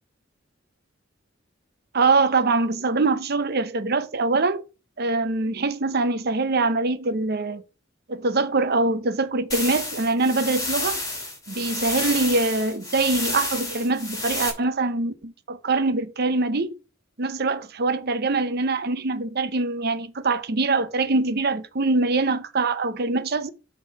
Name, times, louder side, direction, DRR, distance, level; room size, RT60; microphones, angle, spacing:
voice 1, 1.9-4.7 5.0-7.6 8.1-11.0 11.5-16.8 17.2-23.5, right 3 dB, 55° right, 0.8 m, -23 dB
sound 1, 9.5-14.5, left 2 dB, 20° left, 3.0 m, -30 dB
8.8 x 3.9 x 6.5 m
head